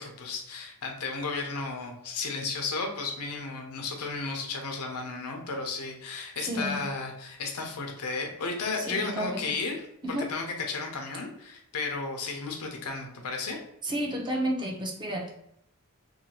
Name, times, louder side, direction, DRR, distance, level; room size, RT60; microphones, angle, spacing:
voice 1, 0.0-9.8 10.3-13.6, left 4 dB, 80° left, 2 dB, 0.6 m, -33 dB
voice 2, 6.4-6.8 8.7-9.6 10.0-10.3 13.8-15.3, equal, 20° right, 0 dB, 0.5 m, -31 dB
2.7 x 2.2 x 2.9 m, 0.76 s
head